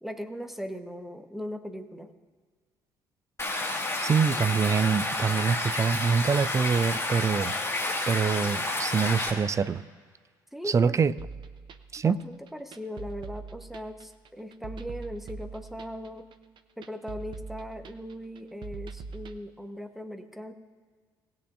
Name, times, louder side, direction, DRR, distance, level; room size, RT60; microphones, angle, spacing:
voice 1, 0.0-2.1 10.5-10.9 12.0-16.3 16.8-20.5, equal, ahead, 6 dB, 1.1 m, -39 dB
Stream, 3.4-9.3, left 2 dB, 25° left, 2.1 m, -30 dB
voice 2, 4.0-7.5 8.1-9.8 10.7-11.1 11.9-12.2, right 6 dB, 25° right, 15 dB, 0.4 m, -25 dB
sound 1, 11.2-19.4, right 4 dB, 45° right, 0.8 m, -43 dB
19.0 x 9.0 x 2.6 m, 1.5 s
figure-of-eight pair, 50°, 11 cm